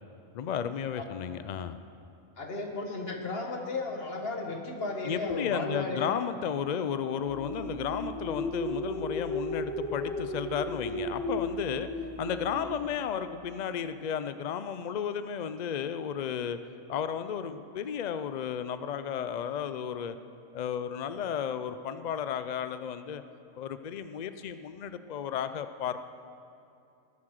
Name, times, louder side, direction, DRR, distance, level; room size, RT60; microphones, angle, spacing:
voice 1, 0.3-1.8 5.0-11.9 12.2-16.6 16.9-20.2 20.5-23.2 23.5-26.0, left 8 dB, 85° left, 11 dB, 0.3 m, -33 dB
voice 2, 2.4-6.1, left 2 dB, 45° left, 3 dB, 1.7 m, -34 dB
sound 1, 7.3-12.8, left 1 dB, 5° left, 1.8 m, -35 dB
19.5 x 9.8 x 6.5 m, 2.6 s
omnidirectional pair, 1.5 m